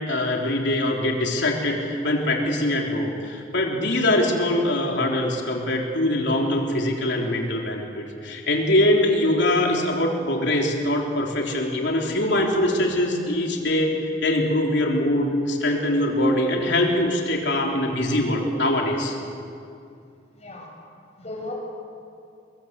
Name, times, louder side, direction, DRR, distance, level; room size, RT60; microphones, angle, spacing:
voice 1, 0.0-19.2, left 1 dB, 70° left, 0 dB, 3.6 m, -23 dB
voice 2, 20.3-20.7 21.2-21.5, left 2 dB, 35° left, -1 dB, 7.2 m, -37 dB
27.0 x 23.0 x 8.2 m, 2.4 s
head